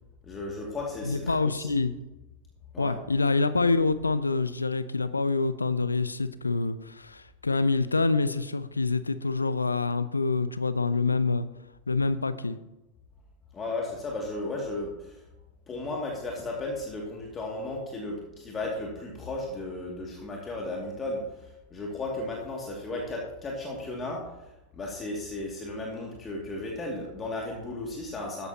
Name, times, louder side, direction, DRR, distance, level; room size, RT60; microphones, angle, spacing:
voice 1, 0.2-1.8 2.7-3.0 13.5-15.3 15.7-24.5 24.7-28.5, left 2 dB, 20° left, -1 dB, 2.5 m, -35 dB
voice 2, 1.0-1.9 2.8-11.5 11.9-12.6, left 3 dB, 80° left, 14 dB, 0.7 m, -26 dB
14.5 x 10.5 x 3.0 m, 0.98 s
figure-of-eight pair, 90°, 0 cm